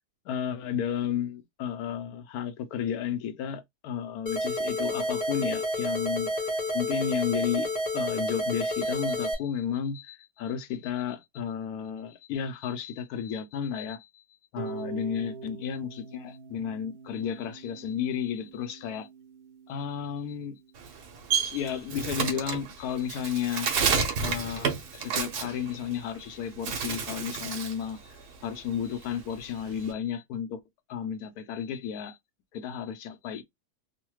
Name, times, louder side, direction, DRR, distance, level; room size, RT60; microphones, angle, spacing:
voice 1, 0.3-6.3 6.7-14.2 14.5-19.1 19.7-20.6 21.4-23.7 24.2-28.0 28.4-30.6 30.9-32.2 32.5-33.4, left 8 dB, 75° left, 1.1 m, -33 dB
sound 1, 4.3-9.3, equal, 35° left, 0.7 m, -30 dB
Harp, 14.6-20.6, right 6 dB, 55° right, 0.9 m, -44 dB
Bird, 20.8-26.2 26.6-27.8 28.2-29.9, right 6 dB, 80° right, 1.3 m, -30 dB
3.1 x 2.1 x 3.0 m
omnidirectional pair, 1.6 m